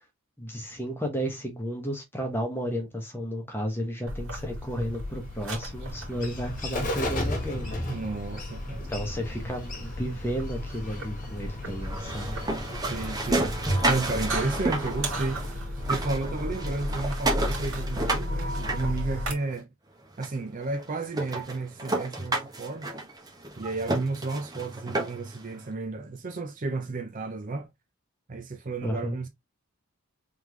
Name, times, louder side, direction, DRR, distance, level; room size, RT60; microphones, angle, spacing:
voice 1, 0.4-7.8 8.9-12.4 28.8-29.2, equal, 10° left, 1.2 m, -33 dB
sound 1, 4.1-19.3, equal, 65° right, 2.2 m, -35 dB
Bird, 4.7-16.1, left 1 dB, 35° left, 1.4 m, -37 dB
voice 2, 7.9-8.9 12.9-13.5 13.9-19.7 20.2-22.9 23.6-27.7 28.3-29.3, right 3 dB, 35° right, 0.5 m, -32 dB
sound 2, 11.8-15.5 15.8-19.5 20.2-20.3 20.7-20.8 21.1-25.4, right 2 dB, 15° right, 0.9 m, -31 dB
3.6 x 3.4 x 3.1 m
head